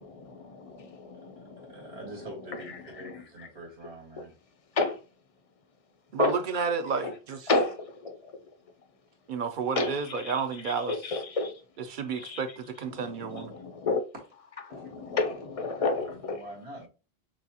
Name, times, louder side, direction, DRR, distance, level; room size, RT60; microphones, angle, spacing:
voice 1, 0.0-1.2 4.8-5.0 6.2-6.3 7.5-7.8 9.8-9.9 10.9-11.5 12.2-12.4 13.5-14.0 14.7-16.4, left 3 dB, 45° left, 0.5 m, -29 dB
voice 2, 1.7-4.3 14.7-14.9 15.7-16.9, right 1 dB, 75° right, 2.0 m, -45 dB
voice 3, 6.1-7.5 9.3-11.2 11.8-13.5, right 5 dB, 55° right, 0.7 m, -31 dB
6.1 x 2.3 x 2.8 m
omnidirectional pair, 1.1 m